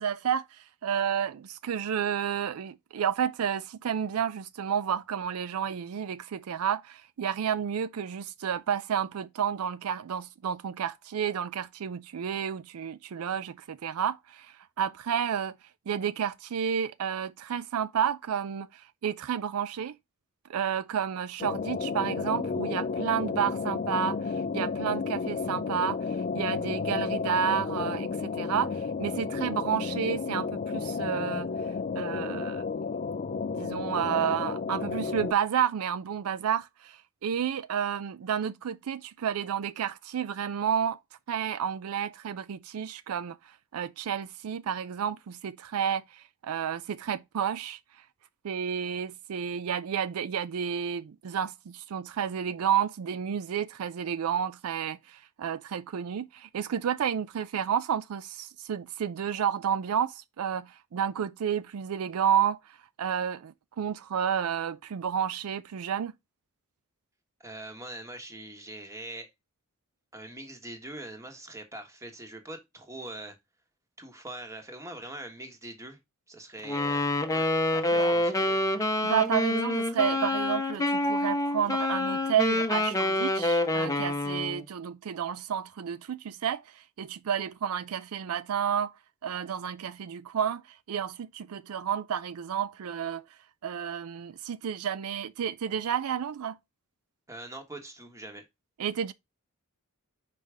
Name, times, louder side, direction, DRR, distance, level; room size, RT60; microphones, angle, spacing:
voice 1, 0.0-15.6 15.9-20.0 20.5-31.5 31.9-32.6 33.6-41.0 41.3-47.8 48.4-66.1 77.9-78.2 79.0-88.9 89.2-93.2 93.6-96.6 98.8-99.1, right 8 dB, 75° right, 0.4 m, -31 dB
sound 1, 21.4-35.3, left 5 dB, 35° left, 0.3 m, -32 dB
voice 2, 67.4-69.3 70.1-73.4 74.0-76.0 76.3-77.5 77.7-78.7 97.3-98.4, right 1 dB, 15° right, 1.3 m, -43 dB
Wind instrument woodwind instrument, 76.6-84.6, left 1 dB, 15° left, 0.8 m, -27 dB
5.6 x 5.0 x 3.4 m
head